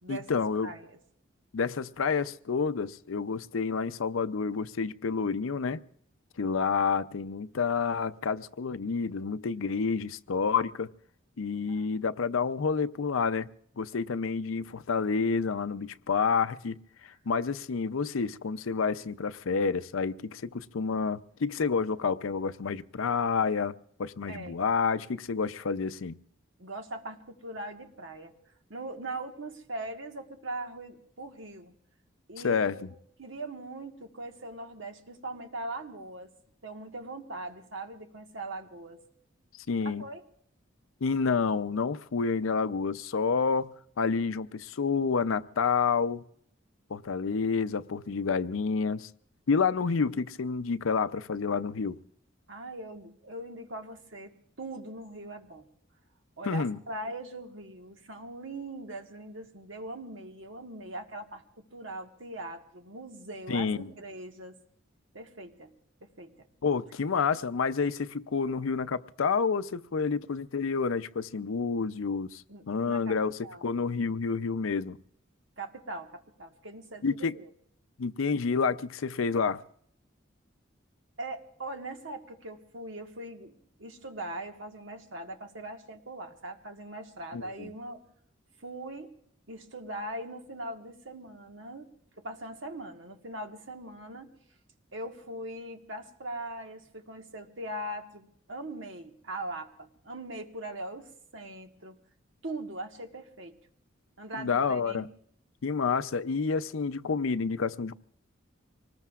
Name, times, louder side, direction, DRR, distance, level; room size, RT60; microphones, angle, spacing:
voice 1, 0.1-0.7 1.5-5.8 6.4-10.9 11.4-13.5 13.8-26.2 32.4-32.7 39.7-40.0 41.0-46.2 46.9-49.1 49.5-52.0 56.4-56.8 63.5-63.9 66.6-75.0 77.0-77.3 78.0-79.6 87.3-87.7 104.3-105.1 105.6-107.9, left 5 dB, 90° left, 0.6 m, -29 dB
voice 2, 24.3-24.6 26.6-28.3 28.7-31.7 32.3-32.8 33.2-36.3 36.6-39.0 39.8-40.2 52.5-54.3 54.6-55.7 56.4-64.6 65.1-65.7 66.0-66.5 72.5-73.2 73.4-73.7 75.6-77.5 81.2-88.0 88.6-89.1 89.5-91.9 92.2-94.3 94.9-101.9 102.4-103.6 104.2-105.1, right 1 dB, 75° right, 1.5 m, -41 dB
25.0 x 19.5 x 2.4 m
head